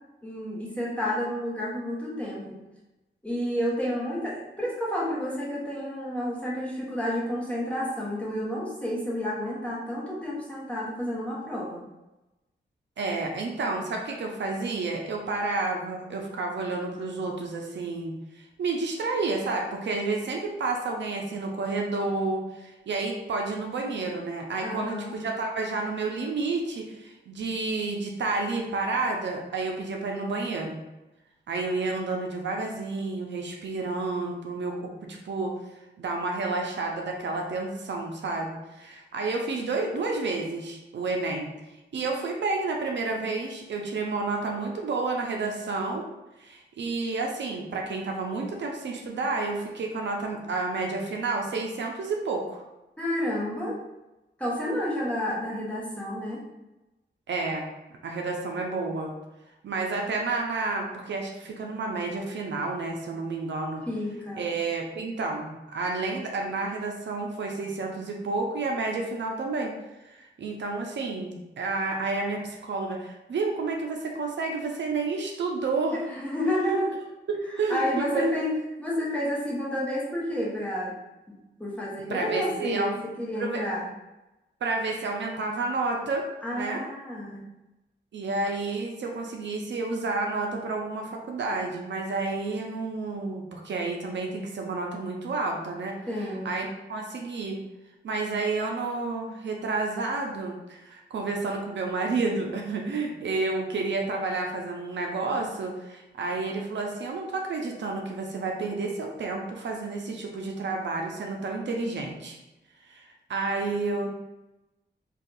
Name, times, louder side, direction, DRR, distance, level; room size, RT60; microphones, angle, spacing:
voice 1, 0.2-2.6 3.2-11.8 24.6-25.2 53.0-53.8 54.4-56.4 63.9-64.4 75.9-76.9 77.7-78.5 78.8-80.9 81.6-83.8 86.4-87.4 96.1-96.5, left 1 dB, 5° left, -6 dB, 0.9 m, -30 dB
voice 2, 13.0-30.8 31.5-35.5 36.0-41.5 41.9-46.0 46.4-52.6 57.3-57.7 58.0-59.1 59.6-63.8 64.4-69.7 70.0-76.0 76.6-76.8 77.3-78.3 82.1-83.0 83.4-83.6 84.6-86.8 88.1-97.6 98.0-112.4 112.8-114.1, right 3 dB, 75° right, 1 dB, 0.5 m, -30 dB
2.6 x 2.3 x 3.8 m, 0.99 s
wide cardioid pair, 105°, 19 cm